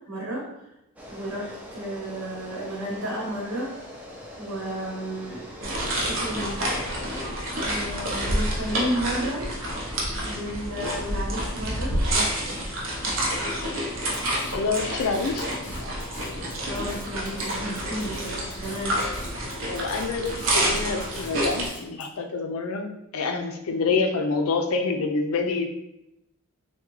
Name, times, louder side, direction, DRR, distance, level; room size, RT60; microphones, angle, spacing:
voice 1, 0.1-0.4 1.1-3.7 4.4-5.4 5.9-6.6 7.6-9.4 10.2-12.6 15.6-15.9 16.6-19.0 23.9-24.0, right 1 dB, 90° right, -3 dB, 1.1 m, -32 dB
sound 1, 1.0-7.2, equal, 5° right, 0.4 m, -42 dB
sound 2, 5.6-21.7, right 1 dB, 65° right, 0.7 m, -28 dB
Drum kit, 14.1-22.1, left 3 dB, 35° left, 0.7 m, -46 dB
voice 2, 14.5-15.5 19.7-22.9 23.1-25.7, left 4 dB, 80° left, 5 dB, 0.4 m, -27 dB
3.4 x 2.2 x 3.1 m, 0.87 s
head